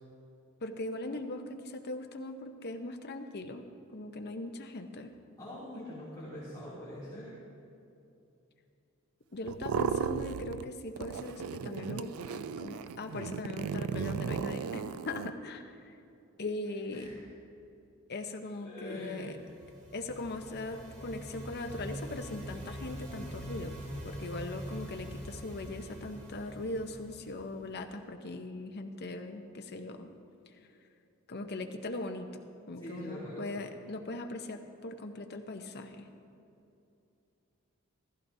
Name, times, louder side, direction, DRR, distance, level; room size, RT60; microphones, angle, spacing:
voice 1, 0.6-5.1 9.3-16.0 16.4-17.1 18.1-19.4 19.9-23.7 24.0-30.1 31.3-32.3 32.7-36.1, left 2 dB, 50° left, 6 dB, 0.8 m, -40 dB
voice 2, 5.4-7.3 16.9-17.2 18.4-19.3 32.8-33.5, equal, 20° left, -11 dB, 2.8 m, -44 dB
sound 1, 9.5-10.7 11.0-15.3, right 6 dB, 70° right, 0.3 m, -35 dB
sound 2, 19.1-27.8, equal, 35° right, 1.9 m, -44 dB
15.0 x 14.5 x 2.7 m, 2.7 s
head